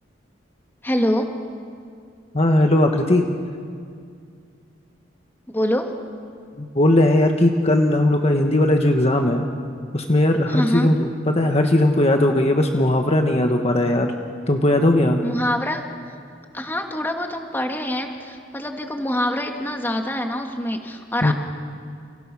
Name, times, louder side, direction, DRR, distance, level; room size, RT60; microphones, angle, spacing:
voice 1, 0.8-1.3 5.5-5.9 10.5-10.9 15.2-15.8 16.5-21.3, left 1 dB, 10° left, 3 dB, 2.1 m, -25 dB
voice 2, 2.3-3.3 6.6-9.4 9.9-14.1 14.5-15.2 21.2-21.3, left 1 dB, 35° left, 3 dB, 1.5 m, -18 dB
30.0 x 29.5 x 6.3 m, 2.3 s
head